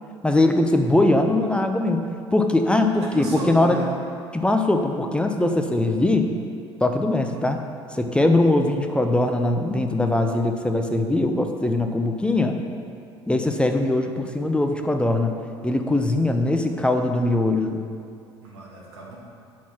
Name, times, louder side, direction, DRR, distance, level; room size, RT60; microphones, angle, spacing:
voice 1, 0.2-3.8 4.3-6.3 6.8-7.6 7.9-12.6 13.3-15.3 15.6-17.8, left 2 dB, 5° left, 5 dB, 0.5 m, -21 dB
voice 2, 3.1-3.9 18.4-19.2, right 2 dB, 70° right, -4 dB, 1.3 m, -32 dB
5.9 x 4.2 x 5.7 m, 2.3 s
figure-of-eight pair, 65°, 14 cm